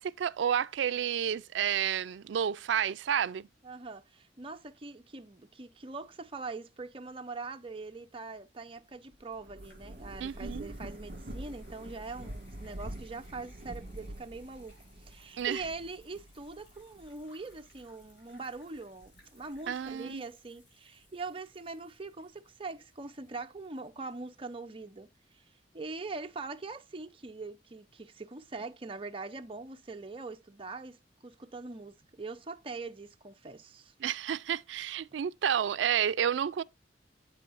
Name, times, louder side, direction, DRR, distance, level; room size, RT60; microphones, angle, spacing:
voice 1, 0.0-3.5 10.2-10.7 15.4-15.6 19.7-20.2 34.0-36.6, right 9 dB, 80° right, 0.4 m, -30 dB
voice 2, 3.6-14.8 15.1-25.1 25.3-25.4 25.7-33.9 35.1-35.2, right 3 dB, 30° right, 0.7 m, -42 dB
sound 1, 7.4-25.4, left 1 dB, 70° left, 5.5 m, -65 dB
Thunder / Rain, 9.1-18.0 18.6-19.9, right 1 dB, 50° right, 1.7 m, -46 dB
8.4 x 8.2 x 2.5 m
head